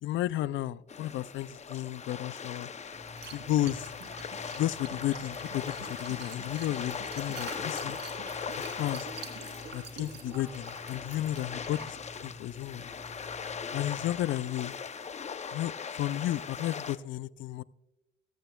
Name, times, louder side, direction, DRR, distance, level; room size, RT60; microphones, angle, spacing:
voice 1, 0.0-2.7 3.3-3.9 4.5-8.0 8.6-9.1 9.7-12.0 12.2-12.9 13.7-14.8 15.5-17.6, left 14 dB, 75° left, 19 dB, 0.4 m, -33 dB
sound 1, 0.9-17.0, left 6 dB, 35° left, 0.6 m, -40 dB
Liquid, 2.9-14.2, right 2 dB, 65° right, 2.9 m, -46 dB
19.5 x 8.9 x 2.3 m, 0.94 s
cardioid pair, 90°, 20 cm